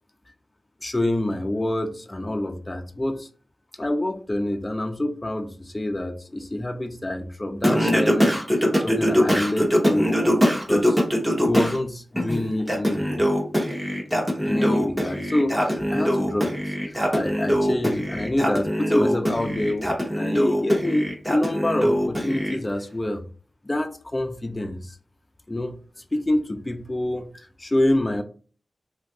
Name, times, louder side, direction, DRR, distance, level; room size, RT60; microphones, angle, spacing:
voice 1, 0.8-3.3 3.8-8.4 8.8-10.4 10.6-11.0 11.4-13.2 14.5-16.7 17.1-23.2 23.6-25.0 25.5-25.8 26.1-28.2, left 1 dB, 20° left, 6 dB, 0.3 m, -26 dB
Singing, 7.6-11.8 12.2-22.6, equal, 10° right, 0.7 m, -22 dB
2.6 x 2.3 x 3.4 m, 0.41 s
wide cardioid pair, 95°, 0 cm